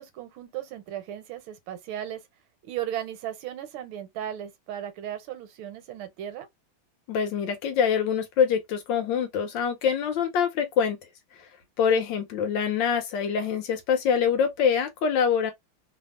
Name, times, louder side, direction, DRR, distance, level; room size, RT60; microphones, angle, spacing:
voice 1, 0.0-2.2 2.6-6.5 11.9-12.1, right 11 dB, 80° right, 1.5 m, -36 dB
voice 2, 7.1-11.0 11.4-11.5 11.8-15.5, left 7 dB, 75° left, 1.2 m, -25 dB
3.3 x 2.0 x 2.4 m
omnidirectional pair, 2.2 m